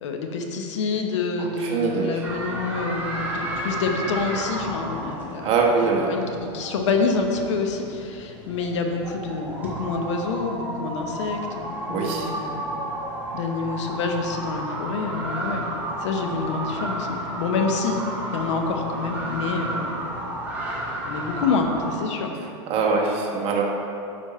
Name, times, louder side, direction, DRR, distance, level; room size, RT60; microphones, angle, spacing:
voice 1, 0.0-5.5 6.1-12.6 13.3-15.7 16.0-18.0 18.3-19.9 21.0-22.4, left 4 dB, 75° left, 4 dB, 1.0 m, -27 dB
voice 2, 1.4-2.2 5.4-6.1 11.9-12.3 22.7-23.6, right 4 dB, 35° right, -1 dB, 1.3 m, -23 dB
sound 1, 2.2-21.9, right 1 dB, 10° right, 1.6 m, -32 dB
8.6 x 5.2 x 4.3 m, 2.8 s
supercardioid pair, 130°, 15 cm